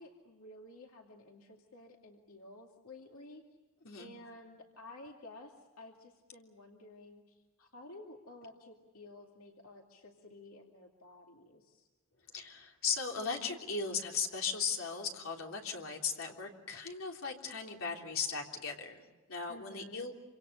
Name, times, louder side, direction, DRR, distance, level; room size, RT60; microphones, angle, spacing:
voice 1, 0.0-3.4 4.0-11.9 19.5-20.1, left 2 dB, 90° left, 1 dB, 2.5 m, -53 dB
voice 2, 12.3-20.1, left 5 dB, 70° left, 1 dB, 3.4 m, -37 dB
27.5 x 26.5 x 6.8 m, 1.2 s
head